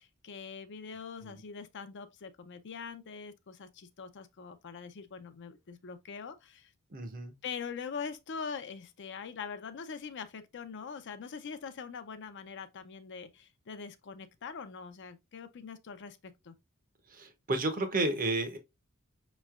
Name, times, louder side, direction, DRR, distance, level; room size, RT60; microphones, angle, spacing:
voice 1, 0.0-6.7 7.4-16.5, left 5 dB, 55° left, 0.5 m, -43 dB
voice 2, 6.9-7.3 17.1-18.6, right 2 dB, 40° right, 0.7 m, -32 dB
5.2 x 3.1 x 2.3 m
head